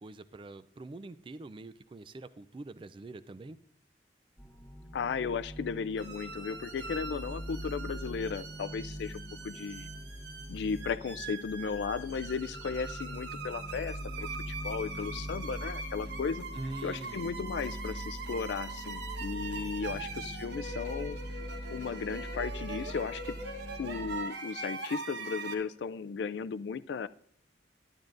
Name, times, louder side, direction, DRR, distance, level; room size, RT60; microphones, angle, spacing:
voice 1, 0.0-3.6 16.5-17.3 19.8-20.1, right 2 dB, 30° right, 14 dB, 0.3 m, -44 dB
sound 1, 4.4-24.2, equal, 15° left, 1.6 m, -43 dB
voice 2, 4.9-9.9 10.5-16.4 16.8-21.2 21.7-23.4 23.8-27.1, left 5 dB, 70° left, 14 dB, 0.3 m, -35 dB
sound 2, 6.0-25.5, right 3 dB, 75° right, 1.1 m, -42 dB
11.5 x 10.5 x 2.5 m, 0.67 s
head